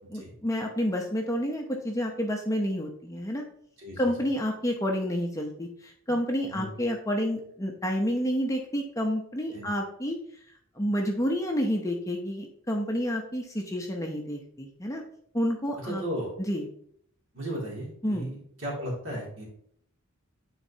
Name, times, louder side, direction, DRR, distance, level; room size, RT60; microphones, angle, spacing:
voice 1, 0.1-3.4 4.0-10.2 10.8-15.0 15.3-16.0 16.4-16.7 18.0-18.3, equal, 15° left, 2 dB, 0.7 m, -29 dB
voice 2, 3.8-4.1 6.4-6.7 9.5-9.7 15.8-16.3 17.3-19.4, equal, 60° right, -3 dB, 2.4 m, -35 dB
9.4 x 4.0 x 2.8 m, 0.65 s
head